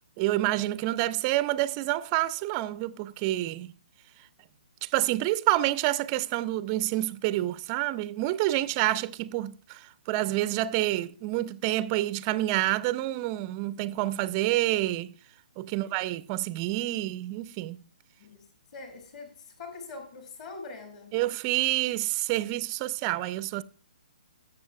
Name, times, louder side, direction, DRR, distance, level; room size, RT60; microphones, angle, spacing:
voice 1, 0.2-3.7 4.8-15.1 15.6-17.8 21.1-23.6, right 16 dB, 25° right, 0.4 m, -28 dB
voice 2, 18.7-21.1, left 4 dB, 45° left, 2.0 m, -44 dB
19.5 x 6.7 x 2.2 m
figure-of-eight pair, 135°, 5 cm